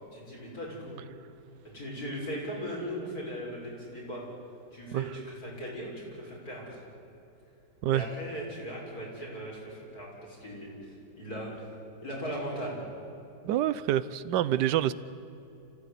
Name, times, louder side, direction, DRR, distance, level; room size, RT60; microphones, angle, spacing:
voice 1, 0.1-1.0 1.7-4.2 4.7-6.8 7.9-11.7 12.0-12.8, equal, 55° left, -4 dB, 7.0 m, -38 dB
voice 2, 13.4-14.9, right 12 dB, 80° right, 16 dB, 1.4 m, -26 dB
26.0 x 16.0 x 9.9 m, 2.8 s
omnidirectional pair, 1.9 m